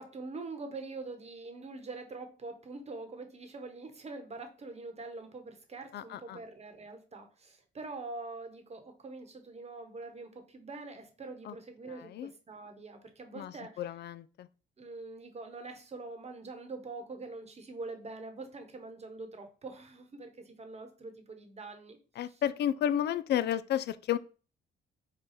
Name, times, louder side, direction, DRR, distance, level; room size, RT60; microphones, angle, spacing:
voice 1, 0.0-13.8 14.8-22.4, right 3 dB, 30° right, 1.1 m, -44 dB
voice 2, 5.9-6.4 11.5-11.6 11.9-12.3 13.3-14.5 22.2-24.2, left 10 dB, 60° left, 0.4 m, -32 dB
5.0 x 2.3 x 4.0 m
cardioid pair, 90°, 20 cm